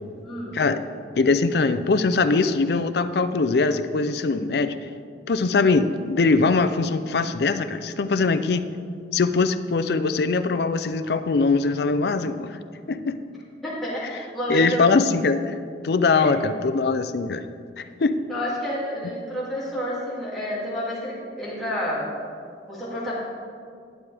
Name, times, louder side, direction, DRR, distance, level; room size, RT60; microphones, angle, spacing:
voice 1, 0.2-0.5 13.6-14.8 16.1-16.5 18.1-22.1 22.7-23.1, equal, ahead, -9 dB, 2.4 m, -30 dB
voice 2, 1.2-4.8 5.3-8.6 9.1-12.6 12.9-13.2 14.5-15.5 15.8-17.4 17.8-18.2, left 4 dB, 65° left, 11 dB, 0.4 m, -22 dB
11.5 x 8.7 x 3.4 m, 2.3 s
head